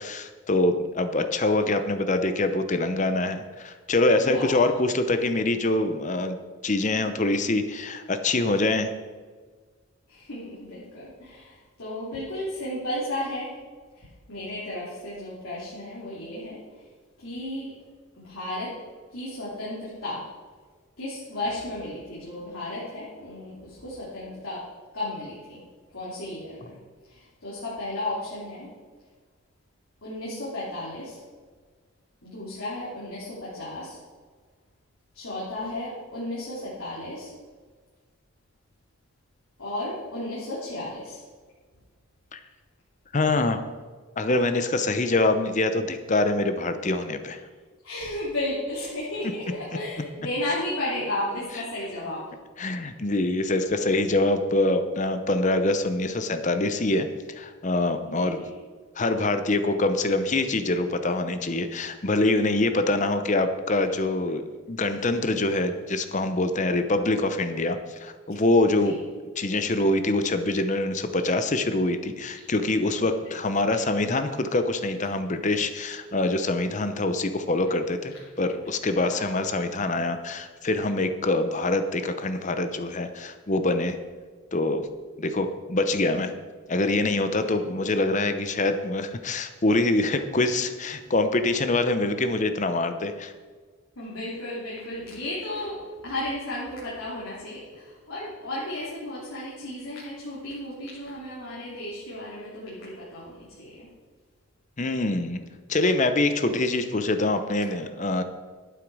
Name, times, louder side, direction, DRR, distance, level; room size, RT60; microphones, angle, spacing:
voice 1, 0.0-6.4 6.6-8.9 42.3-42.4 43.1-43.6 44.2-47.4 52.6-57.1 57.3-58.4 59.0-69.0 69.4-84.0 84.5-84.9 85.2-86.3 86.7-93.3 104.8-105.4 105.7-108.2, left 2 dB, 35° left, 9 dB, 0.7 m, -25 dB
voice 2, 4.2-4.8 10.1-13.5 13.9-16.8 17.2-17.7 18.2-18.8 19.1-20.2 21.0-24.7 24.9-25.6 25.9-26.8 27.1-28.7 30.0-31.2 32.2-34.0 35.1-37.3 39.6-41.2 47.8-52.3 58.0-58.5 68.8-69.0 73.0-73.1 79.0-79.6 87.3-87.7 94.0-103.9, left 1 dB, 85° left, -8 dB, 3.3 m, -34 dB
12.0 x 9.2 x 4.9 m, 1.5 s
head